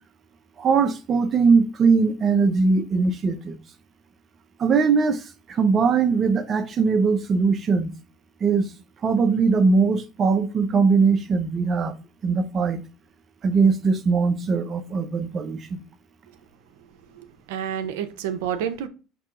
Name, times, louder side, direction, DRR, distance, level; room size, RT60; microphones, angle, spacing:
voice 1, 0.6-3.6 4.6-5.2 5.5-7.9 8.4-8.7 9.0-11.9 12.2-12.8 13.4-15.8, right 4 dB, 35° right, 0.6 m, -20 dB
voice 2, 17.1-18.9, right 9 dB, 85° right, 0.5 m, -29 dB
4.9 x 2.8 x 3.5 m
supercardioid pair, 100°, 0 cm